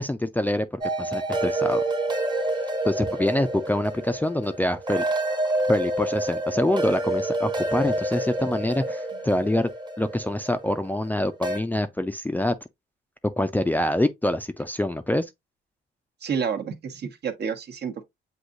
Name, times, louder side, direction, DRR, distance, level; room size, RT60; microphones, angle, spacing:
voice 1, 0.0-1.8 2.8-5.0 5.7-9.7 10.0-12.5 13.4-15.3, left 1 dB, 10° left, 0.4 m, -25 dB
sound 1, 0.8-11.6, right 1 dB, 20° right, 1.0 m, -28 dB
voice 2, 16.2-18.0, right 6 dB, 55° right, 1.0 m, -29 dB
7.9 x 2.7 x 2.5 m
cardioid pair, 90°, 20 cm